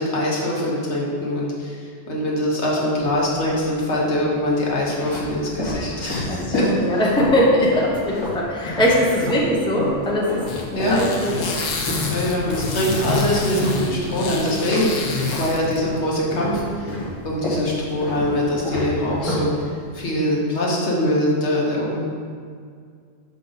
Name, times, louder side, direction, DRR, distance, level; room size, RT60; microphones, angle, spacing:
voice 1, 0.0-6.7 10.7-11.0 12.1-15.1 15.4-16.9 17.2-19.5 19.9-22.0, left 1 dB, 65° left, -4 dB, 1.4 m, -23 dB
sound 1, 2.9-3.7 4.4-9.5 9.7-16.0 16.3-20.0, left 1 dB, 25° left, 1.6 m, -29 dB
voice 2, 6.3-10.4 10.8-11.5, equal, 5° left, -4 dB, 0.8 m, -20 dB
sound 2, 10.5-15.8, left 4 dB, 85° left, 1.2 m, -28 dB
6.3 x 5.2 x 3.9 m, 2.2 s
omnidirectional pair, 1.3 m